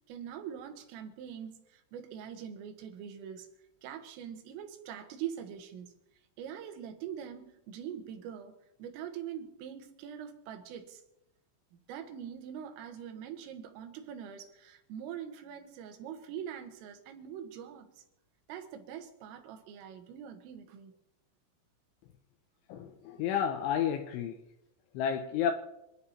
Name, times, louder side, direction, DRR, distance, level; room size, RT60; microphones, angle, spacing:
voice 1, 0.1-3.5 3.8-5.9 6.4-8.5 8.8-11.0 11.7-18.0 18.5-20.9 23.1-23.3, right 9 dB, 85° right, 4.1 m, -43 dB
voice 2, 22.7-24.4 24.9-25.5, left 8 dB, 80° left, 3.3 m, -31 dB
27.0 x 9.9 x 4.3 m
omnidirectional pair, 5.7 m